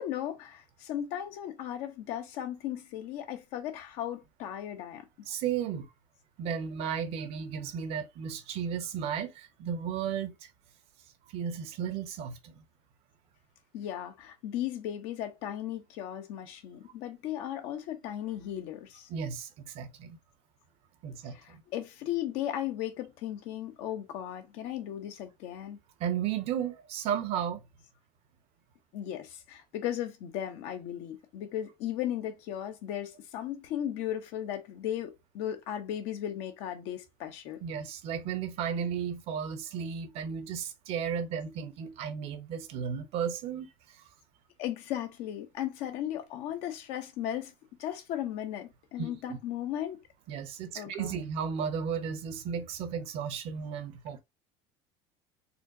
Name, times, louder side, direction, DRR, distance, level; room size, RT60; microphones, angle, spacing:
voice 1, 0.0-5.1 13.7-19.1 21.3-25.8 28.9-37.6 44.6-47.5 47.8-50.0 50.7-51.2, left 11 dB, 70° left, 0.9 m, -36 dB
voice 2, 5.3-5.9 6.4-10.3 11.3-12.5 19.1-20.2 21.0-21.6 26.0-27.6 37.6-43.7 49.0-49.4 50.3-54.2, right 7 dB, 60° right, 0.9 m, -34 dB
4.3 x 2.2 x 2.6 m
supercardioid pair, 110°, 12 cm